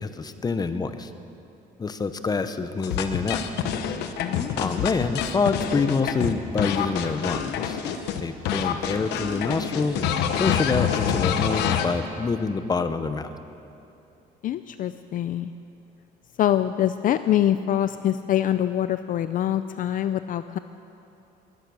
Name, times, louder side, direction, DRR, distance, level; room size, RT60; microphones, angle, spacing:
voice 1, 0.0-1.1 1.8-3.4 4.6-7.8 8.2-10.1 10.4-13.3, left 4 dB, 25° left, 10 dB, 0.9 m, -26 dB
sound 1, 2.8-8.2 8.5-11.9, left 8 dB, 85° left, 1.1 m, -26 dB
voice 2, 4.2-4.8 14.4-15.5 16.4-20.6, left 11 dB, 55° left, 12 dB, 0.5 m, -25 dB
22.5 x 9.9 x 6.3 m, 2.8 s
cardioid pair, 110°, 17 cm